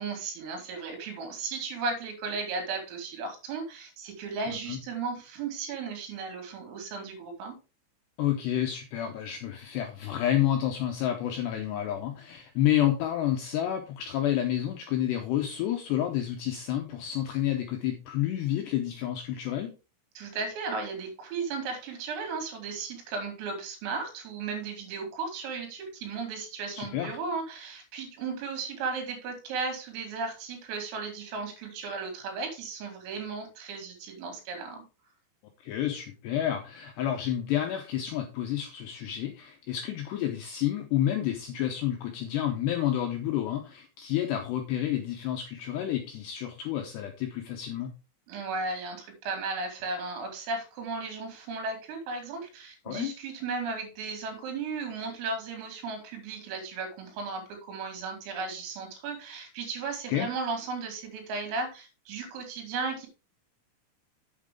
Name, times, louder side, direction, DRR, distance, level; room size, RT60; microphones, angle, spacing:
voice 1, 0.0-7.6 20.2-34.8 48.3-63.1, right 4 dB, 80° right, 4 dB, 5.0 m, -35 dB
voice 2, 4.5-4.8 8.2-19.7 26.8-27.2 35.6-47.9 52.9-53.1 60.1-60.3, left 11 dB, 80° left, 4 dB, 2.5 m, -29 dB
8.4 x 7.5 x 3.7 m, 0.31 s
omnidirectional pair, 6.0 m